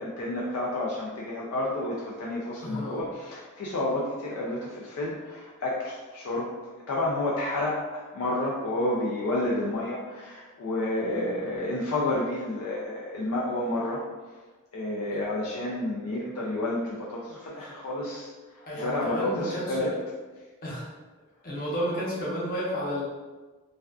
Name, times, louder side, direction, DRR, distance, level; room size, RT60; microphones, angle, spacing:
voice 1, 0.0-14.4 14.7-19.9, left 1 dB, 70° left, -4 dB, 0.4 m, -30 dB
voice 2, 2.6-3.0 18.7-19.9 20.6-20.9 21.4-23.0, equal, 40° left, -7 dB, 0.7 m, -31 dB
2.4 x 2.3 x 2.2 m, 1.3 s
head